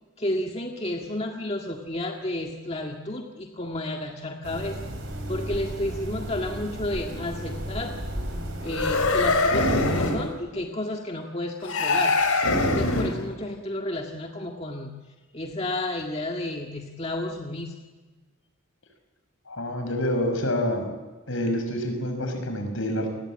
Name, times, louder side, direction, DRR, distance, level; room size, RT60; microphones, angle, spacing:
voice 1, 0.2-4.8 5.3-8.0 8.6-12.1 12.6-14.9 15.3-17.7, left 1 dB, 25° left, 1 dB, 1.9 m, -31 dB
sound 1, 4.4-10.1, equal, 55° right, 5.7 m, -34 dB
sound 2, 8.7-10.3 11.6-13.3, left 2 dB, 80° left, 4.1 m, -23 dB
voice 2, 19.5-20.9 21.3-23.1, left 1 dB, 65° left, 6 dB, 5.9 m, -27 dB
29.5 x 21.5 x 8.8 m, 1.3 s
head